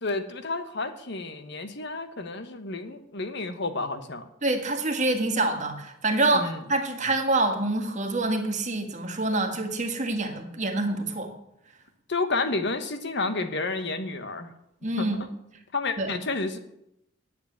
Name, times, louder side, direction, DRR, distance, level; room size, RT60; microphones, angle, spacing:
voice 1, 0.0-4.3 6.3-6.6 12.1-14.5 15.0-15.3 15.7-16.6, left 3 dB, 60° left, 9 dB, 1.2 m, -30 dB
voice 2, 4.4-11.3 14.8-15.2 16.0-16.1, right 2 dB, 40° right, 4 dB, 1.8 m, -26 dB
9.7 x 7.6 x 9.3 m, 0.79 s
head